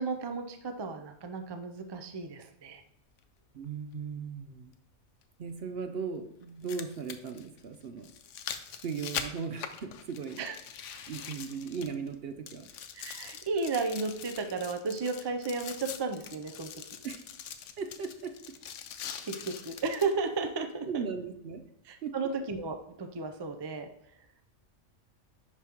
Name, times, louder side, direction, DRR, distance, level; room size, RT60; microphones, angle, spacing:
voice 1, 0.0-2.8 10.4-10.5 10.8-11.0 12.9-16.7 19.2-19.3 19.6-21.0 21.9-23.9, right 4 dB, 35° right, 6 dB, 0.4 m, -34 dB
sound 1, 3.2-3.3 5.2-5.3 6.4-12.2 12.5-20.1 20.7-20.8, left 8 dB, 80° left, 0.9 m, -43 dB
voice 2, 3.5-4.7 5.4-8.1 8.7-10.4 11.1-12.8 17.0-17.2 17.8-18.6 20.9-21.6 22.0-22.2, right 5 dB, 60° right, 7 dB, 0.8 m, -37 dB
10.5 x 3.6 x 2.9 m, 0.79 s
omnidirectional pair, 1.2 m